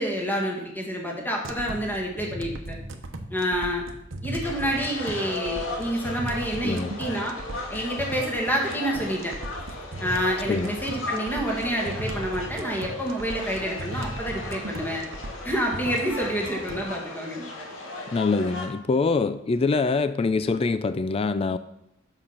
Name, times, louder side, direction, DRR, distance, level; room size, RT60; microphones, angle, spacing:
voice 1, 0.0-2.8 3.3-3.9 4.2-7.4 7.7-9.4 10.0-15.0 15.4-17.4, equal, 10° left, -1 dB, 1.7 m, -28 dB
sound 1, 1.4-16.9, right 1 dB, 70° right, 1.0 m, -37 dB
sound 2, 4.4-18.7, left 2 dB, 70° left, 1.9 m, -37 dB
voice 2, 18.1-21.6, left 4 dB, 30° left, 12 dB, 0.3 m, -24 dB
8.9 x 6.9 x 5.7 m, 0.82 s
head